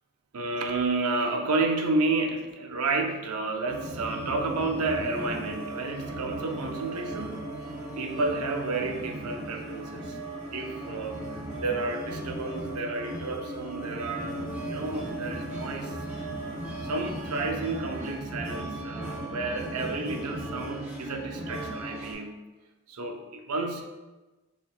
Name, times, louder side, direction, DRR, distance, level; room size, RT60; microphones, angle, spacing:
voice 1, 0.3-7.5 8.0-10.2 10.5-11.2 11.6-14.4 14.7-16.0 16.8-22.4 22.9-23.8, right 3 dB, 90° right, 4 dB, 0.5 m, -31 dB
sound 1, 3.7-22.1, right 1 dB, 10° right, 1.2 m, -37 dB
4.7 x 2.5 x 3.6 m, 1.2 s
head